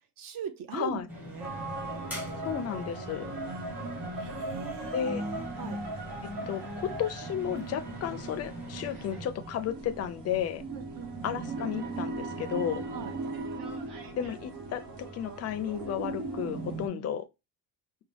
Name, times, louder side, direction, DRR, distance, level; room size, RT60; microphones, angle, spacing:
voice 1, 0.2-1.0 1.3-1.5 4.1-5.8 10.7-11.5 12.9-13.1 16.9-17.1, right 7 dB, 55° right, 0.7 m, -40 dB
voice 2, 0.7-1.1 2.4-3.3 4.9-5.2 6.5-10.6 11.2-12.8 14.1-17.3, left 9 dB, 40° left, 0.4 m, -33 dB
sound 1, 1.1-9.3, equal, 5° right, 1.0 m, -44 dB
sound 2, 1.4-16.9, right 2 dB, 80° right, 1.2 m, -38 dB
4.7 x 2.2 x 3.3 m
cardioid pair, 175°, 41 cm